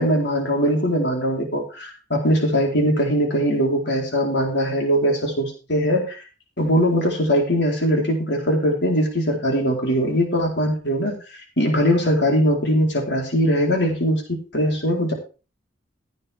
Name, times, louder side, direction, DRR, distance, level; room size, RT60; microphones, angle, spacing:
voice 1, 0.0-6.2 6.6-11.2 11.6-15.1, equal, 60° left, 1 dB, 4.3 m, -21 dB
16.0 x 9.4 x 3.7 m, 0.34 s
head